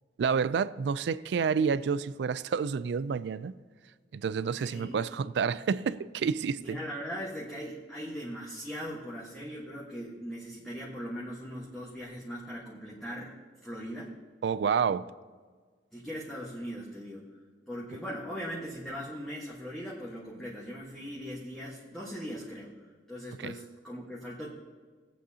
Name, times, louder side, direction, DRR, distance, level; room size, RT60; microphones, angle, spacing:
voice 1, 0.2-3.5 4.1-6.8 14.4-15.1 23.4-23.5, right 6 dB, 70° right, 0.3 m, -29 dB
voice 2, 4.4-5.0 6.6-13.4 13.6-14.1 15.9-17.2 17.7-24.5, equal, 5° left, 1.3 m, -40 dB
18.5 x 8.5 x 2.8 m
head